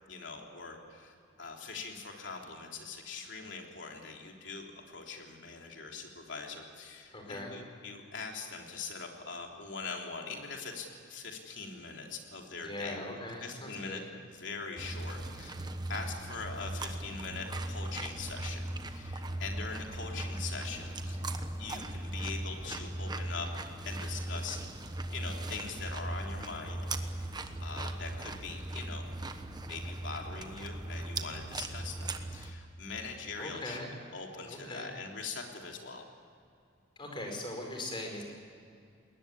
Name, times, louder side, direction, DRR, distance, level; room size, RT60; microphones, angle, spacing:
voice 1, 0.1-13.1 13.4-15.6 15.9-21.3 21.6-23.5 23.8-24.6 25.1-26.8 27.6-29.0 29.7-33.8 34.1-36.0, left 4 dB, 65° left, 1 dB, 3.5 m, -42 dB
voice 2, 7.1-7.5 12.6-14.0 33.4-33.9 34.5-34.9 37.0-38.2, left 1 dB, 25° left, 2 dB, 4.9 m, -40 dB
sound 1, 14.8-32.5, right 1 dB, 20° right, 1.2 m, -38 dB
20.5 x 20.0 x 10.0 m, 2.4 s
head